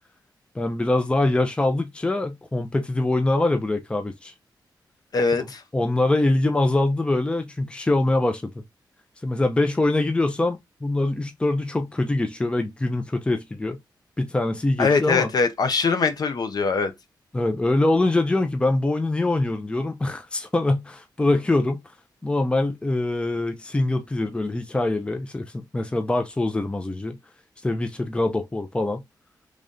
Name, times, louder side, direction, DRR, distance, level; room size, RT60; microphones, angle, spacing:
voice 1, 0.6-4.3 5.3-5.5 5.7-8.5 9.2-13.8 14.2-15.3 17.3-21.8 22.2-27.2 27.6-29.0, left 2 dB, 15° left, 0.5 m, -23 dB
voice 2, 5.1-5.6 14.8-16.9, left 4 dB, 55° left, 0.7 m, -22 dB
3.2 x 2.6 x 3.6 m
wide cardioid pair, 95°, 8 cm